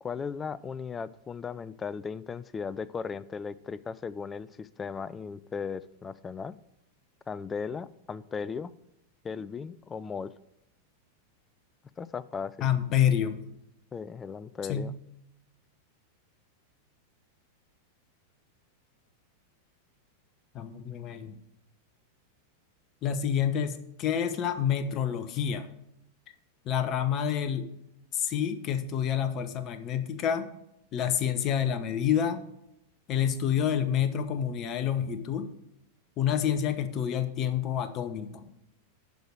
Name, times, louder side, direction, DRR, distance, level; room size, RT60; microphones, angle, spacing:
voice 1, 0.0-6.6 7.3-8.7 9.2-10.3 12.0-12.7 13.9-14.9, left 5 dB, 20° left, 18 dB, 0.4 m, -37 dB
voice 2, 12.6-13.4 14.7-14.9 20.5-21.4 23.0-25.7 26.6-27.7 28.1-30.5 30.9-32.4 33.1-35.5 36.2-38.5, left 9 dB, 35° left, 11 dB, 0.9 m, -28 dB
11.5 x 4.8 x 6.4 m, 0.83 s
figure-of-eight pair, 90°, 0 cm